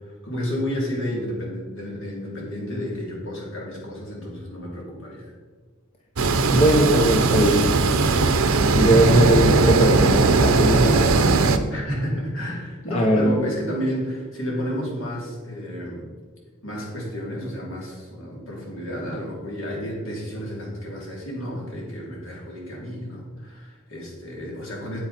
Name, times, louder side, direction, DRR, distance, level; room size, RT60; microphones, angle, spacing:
voice 1, 0.2-5.3 11.7-16.1 16.6-25.0, equal, 65° left, -3 dB, 3.1 m, -31 dB
sound 1, 6.2-11.6, right 3 dB, 75° right, 0.7 m, -18 dB
voice 2, 6.5-7.7 8.7-11.2 12.9-13.4, right 1 dB, 30° left, 0 dB, 0.8 m, -20 dB
8.7 x 8.5 x 4.2 m, 1.5 s
head